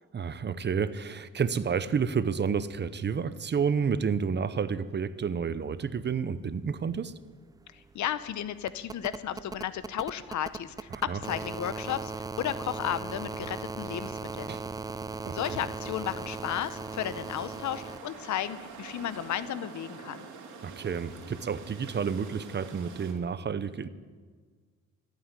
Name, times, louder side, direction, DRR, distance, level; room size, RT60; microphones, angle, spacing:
voice 1, 0.1-7.1 10.9-11.2 14.5-14.6 15.3-15.6 20.6-23.9, right 6 dB, 35° right, 14 dB, 0.8 m, -30 dB
sound 1, 6.8-6.9 7.1-18.0 19.4-19.5, right 4 dB, 15° right, 0.4 m, -39 dB
voice 2, 7.7-14.6 15.3-20.3, left 11 dB, 70° left, 14 dB, 0.9 m, -34 dB
sound 2, 13.8-23.1, right 5 dB, 70° right, 3.0 m, -47 dB
14.0 x 9.3 x 9.8 m, 1.5 s
cardioid pair, 90°, 30 cm